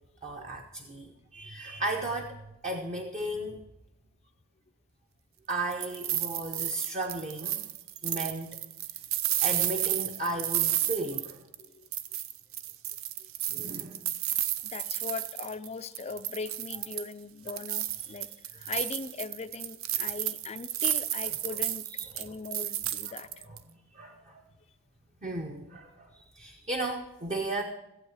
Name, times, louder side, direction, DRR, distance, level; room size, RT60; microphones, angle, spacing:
voice 1, 0.2-3.6 5.5-7.6 8.0-8.6 9.4-11.4 13.5-14.0 22.0-22.3 23.1-23.2 23.9-24.4 25.2-27.6, right 2 dB, 35° right, 2 dB, 0.8 m, -35 dB
sound 1, 5.5-11.6 11.9-15.7 15.9-17.1 17.5-23.6, right 12 dB, 70° right, 0.5 m, -32 dB
voice 2, 14.6-21.8 22.1-23.5, left 4 dB, 30° left, 12 dB, 0.4 m, -39 dB
15.5 x 8.2 x 4.9 m, 0.93 s
head